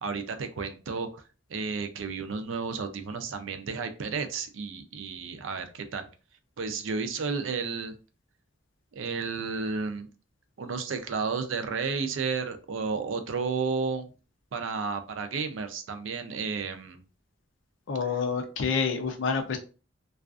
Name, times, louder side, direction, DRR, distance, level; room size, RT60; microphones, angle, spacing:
voice 1, 0.0-1.2 1.5-6.1 6.6-7.9 8.9-10.1 10.6-14.1 14.5-17.0, right 5 dB, 90° right, 8 dB, 0.4 m, -32 dB
voice 2, 17.9-19.6, left 5 dB, 85° left, 3 dB, 0.6 m, -28 dB
2.4 x 2.4 x 2.3 m, 0.34 s
head